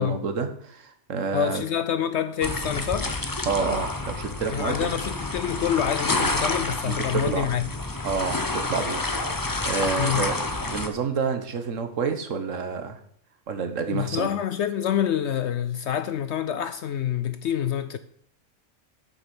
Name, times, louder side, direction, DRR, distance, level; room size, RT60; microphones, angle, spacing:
voice 1, 0.0-1.6 3.5-4.9 6.8-7.5 8.0-9.1 9.3-13.0 13.5-14.3, right 5 dB, 80° right, 1.5 m, -29 dB
voice 2, 1.3-3.1 4.5-7.7 10.0-10.3 13.9-18.0, left 9 dB, 65° left, 0.8 m, -27 dB
sound 1, 2.4-10.9, left 2 dB, 20° left, 0.8 m, -29 dB
8.6 x 7.3 x 6.1 m
omnidirectional pair, 1.3 m